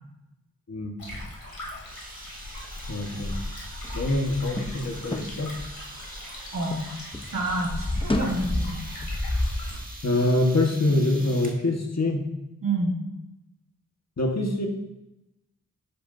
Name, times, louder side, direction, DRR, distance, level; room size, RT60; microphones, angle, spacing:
Stream, 1.0-9.8, left 1 dB, 80° left, 3.0 m, -42 dB
sound 1, 1.9-11.6, right 1 dB, 25° right, 1.8 m, -45 dB
sound 2, 2.5-6.9 7.1-9.7, left 1 dB, 15° left, 0.7 m, -31 dB
voice 1, 2.9-3.4 3.9-5.5 10.0-12.2 14.2-14.7, left 2 dB, 50° left, 1 dB, 1.6 m, -25 dB
voice 2, 6.5-6.9 7.3-8.8 12.6-13.0, right 2 dB, 70° right, -3 dB, 2.6 m, -28 dB
10.5 x 8.4 x 2.7 m, 0.92 s
wide cardioid pair, 55°, 35 cm